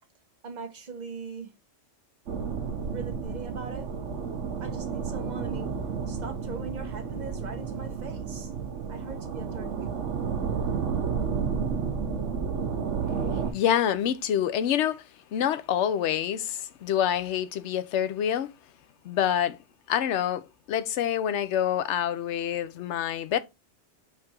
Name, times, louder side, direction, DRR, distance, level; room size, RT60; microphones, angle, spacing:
voice 1, 0.4-1.5 2.8-3.9 4.6-5.7 6.1-8.5 8.9-10.0, right 4 dB, 40° right, 0.9 m, -40 dB
sound 1, 2.3-13.5, right 6 dB, 80° right, 1.1 m, -31 dB
voice 2, 13.5-15.0 15.3-18.5 19.0-19.6 19.9-23.4, left 10 dB, 75° left, 0.8 m, -27 dB
4.5 x 2.5 x 4.2 m
omnidirectional pair, 1.2 m